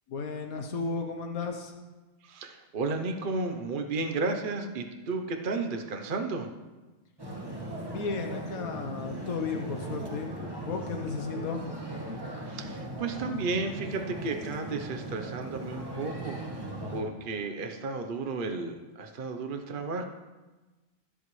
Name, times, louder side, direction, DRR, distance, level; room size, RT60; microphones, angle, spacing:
voice 1, 0.1-1.7 7.9-11.6, left 4 dB, 80° left, 3 dB, 1.4 m, -34 dB
voice 2, 2.2-6.5 12.5-20.0, right 3 dB, 45° right, 4 dB, 0.9 m, -33 dB
sound 1, 7.2-17.0, right 1 dB, 15° right, 1.6 m, -38 dB
24.0 x 8.1 x 3.2 m, 1.2 s
omnidirectional pair, 1.5 m